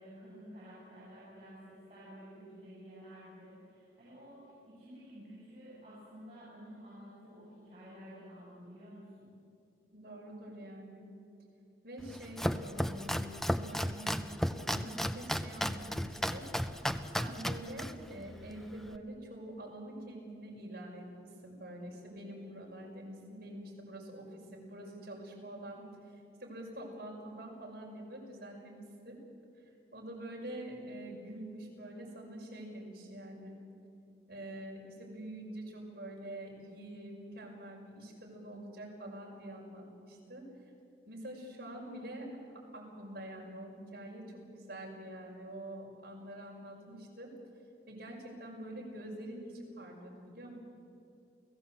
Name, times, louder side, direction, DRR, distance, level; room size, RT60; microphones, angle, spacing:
voice 1, 0.0-9.3, equal, 35° right, -10 dB, 7.6 m, -51 dB
voice 2, 9.9-11.1 11.8-16.5 17.2-29.2 29.9-33.6 34.3-40.4 41.0-42.3 42.7-44.2 44.5-47.3 47.9-50.5, right 1 dB, 55° right, -2 dB, 5.8 m, -46 dB
Domestic sounds home sounds, 12.0-19.0, equal, ahead, 0.5 m, -35 dB
29.5 x 17.5 x 8.1 m, 2.6 s
head